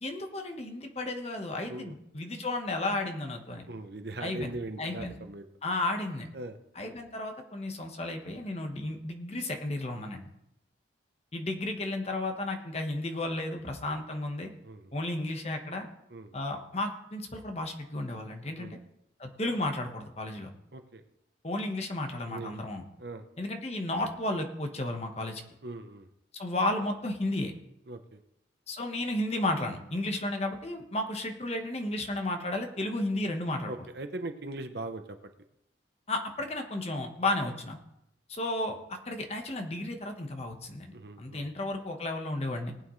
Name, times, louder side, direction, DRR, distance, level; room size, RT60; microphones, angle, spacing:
voice 1, 0.0-3.7 4.2-5.2 5.6-6.3 6.7-10.3 11.3-14.5 14.9-15.9 16.3-18.7 19.2-20.5 21.4-22.8 23.4-25.4 26.3-27.5 28.7-33.9 36.1-37.8 38.3-38.8 39.1-42.7, left 2 dB, 35° left, 4 dB, 1.3 m, -33 dB
voice 2, 3.7-5.4 6.3-6.6 14.6-14.9 16.1-16.3 18.6-18.8 20.7-21.0 22.3-22.5 23.0-23.2 25.6-26.1 27.9-28.2 33.7-35.0 40.9-41.5, right 2 dB, 55° right, 8 dB, 0.9 m, -40 dB
19.5 x 8.9 x 3.2 m, 0.83 s
head